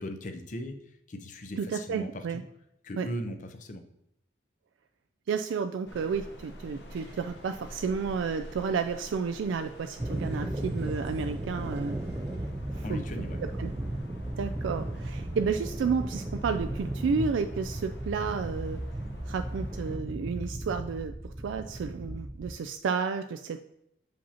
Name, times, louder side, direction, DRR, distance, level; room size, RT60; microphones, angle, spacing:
voice 1, 0.0-2.4 2.8-3.8 12.8-13.4, left 1 dB, 40° left, 6 dB, 0.6 m, -38 dB
voice 2, 1.6-2.4 3.0-3.1 5.3-12.0 12.7-13.0 13.6-13.7 14.4-18.8 19.3-23.7, right 5 dB, 90° right, 8 dB, 0.3 m, -31 dB
sound 1, 5.9-20.0, equal, 70° left, 0.9 m, -48 dB
sound 2, 6.9-12.5, equal, 60° right, 0.7 m, -51 dB
sound 3, 10.0-22.5, right 1 dB, 15° right, 0.4 m, -35 dB
6.9 x 5.1 x 2.8 m, 0.80 s
head